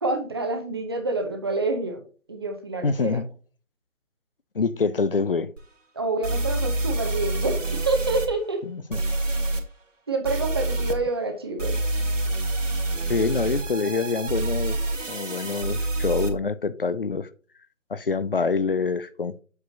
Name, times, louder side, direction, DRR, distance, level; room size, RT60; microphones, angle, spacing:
voice 1, 0.0-3.2 5.9-8.6 10.1-11.8, right 3 dB, 20° right, 0.8 m, -27 dB
voice 2, 2.8-3.3 4.5-5.5 8.7-9.0 13.1-14.8 15.1-17.3 17.9-19.4, left 4 dB, 45° left, 0.6 m, -26 dB
sound 1, 5.6-5.7 6.2-8.3 8.9-9.6 10.2-11.0 11.6-16.3, right 2 dB, 70° right, 2.2 m, -27 dB
8.2 x 6.6 x 2.6 m
figure-of-eight pair, 150°, 40 cm